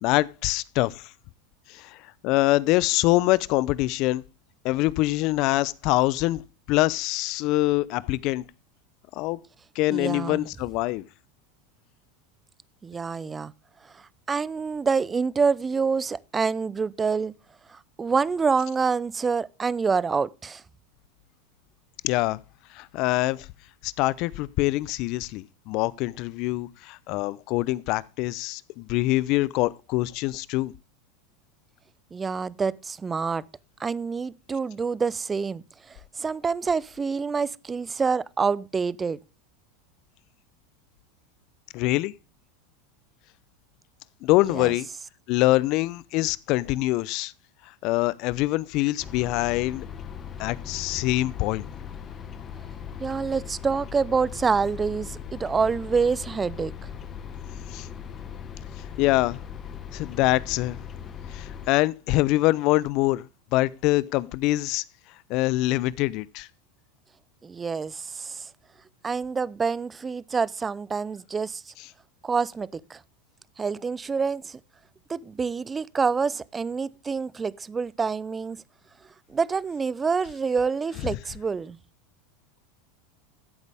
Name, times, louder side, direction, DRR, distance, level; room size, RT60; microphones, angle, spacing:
voice 1, 0.0-1.1 1.7-4.2 4.6-6.4 6.7-8.4 9.1-9.4 9.8-11.1 22.0-22.4 22.7-23.5 23.8-30.7 41.7-42.1 44.2-44.9 45.3-47.3 47.8-49.8 50.4-51.6 57.7-57.9 59.0-59.4 59.9-60.8 61.3-63.3 63.5-64.8 65.3-66.5 81.1-81.2, left 18 dB, 55° left, 0.5 m, -24 dB
voice 2, 9.9-10.5 12.8-13.5 13.9-17.3 17.7-20.6 32.1-33.4 33.8-39.2 44.5-44.7 53.0-56.7 67.4-68.5 69.0-71.7 72.2-73.0 73.6-74.6 75.1-78.6 79.3-81.8, right 5 dB, 20° right, 0.5 m, -27 dB
sound 1, 49.0-61.7, left 8 dB, 35° left, 1.4 m, -39 dB
14.0 x 8.1 x 3.5 m
hypercardioid pair, 100°, 0 cm